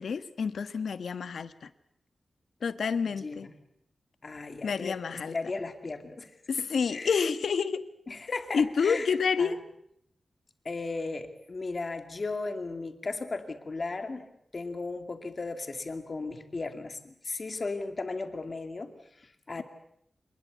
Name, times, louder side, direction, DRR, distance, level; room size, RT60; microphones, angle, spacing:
voice 1, 0.0-1.7 2.6-3.5 4.6-5.3 6.5-7.9 8.5-9.6, left 5 dB, 80° left, 12 dB, 1.3 m, -28 dB
voice 2, 3.2-3.5 4.2-5.0 5.3-6.3 6.6-6.7 6.9-7.1 8.1-9.1 9.4-9.5 10.6-14.3 14.5-18.9 19.2-19.6, left 3 dB, 35° left, 7 dB, 2.5 m, -36 dB
26.0 x 20.5 x 8.2 m, 0.74 s
wide cardioid pair, 170°, 0 cm